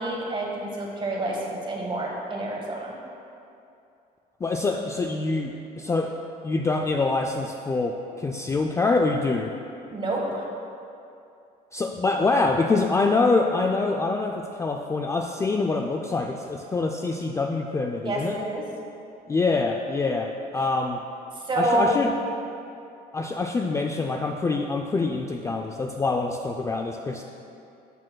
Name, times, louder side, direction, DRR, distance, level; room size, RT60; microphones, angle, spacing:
voice 1, 0.0-2.9 9.9-10.5 18.0-18.6 21.3-22.0 23.2-23.3, right 1 dB, 30° right, -1 dB, 1.4 m, -28 dB
voice 2, 4.4-6.1 6.4-9.5 11.7-18.4 19.3-21.0 21.6-22.1 23.1-27.2, left 3 dB, 15° left, 2 dB, 0.3 m, -25 dB
12.0 x 6.4 x 2.2 m, 2.6 s
cardioid pair, 110°, 17 cm